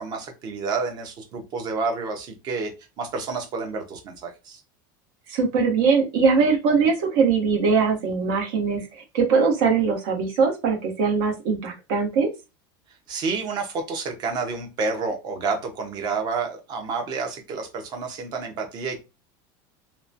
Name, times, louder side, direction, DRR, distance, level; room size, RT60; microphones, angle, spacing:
voice 1, 0.0-2.7 3.0-4.6 13.1-19.0, right 4 dB, 35° right, 4 dB, 0.7 m, -29 dB
voice 2, 5.3-12.3, right 5 dB, 70° right, 1 dB, 1.1 m, -21 dB
2.9 x 2.2 x 2.5 m, 0.27 s
supercardioid pair, 150°, 12 cm